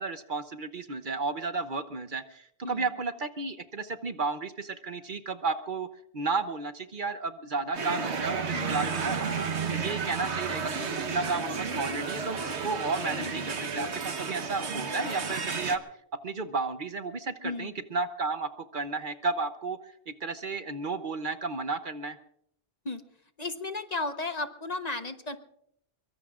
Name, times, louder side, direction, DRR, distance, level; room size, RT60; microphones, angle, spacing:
voice 1, 0.0-5.9 6.1-9.4 9.7-15.8 16.2-22.2, right 4 dB, 50° right, 10 dB, 1.0 m, -33 dB
sound 1, 7.7-15.8, right 5 dB, 85° right, 1.5 m, -32 dB
voice 2, 8.5-8.9 13.1-13.5 17.4-17.8 22.8-23.0 23.4-25.4, left 3 dB, 40° left, 8 dB, 1.1 m, -35 dB
24.0 x 23.0 x 2.4 m, 0.70 s
omnidirectional pair, 1.1 m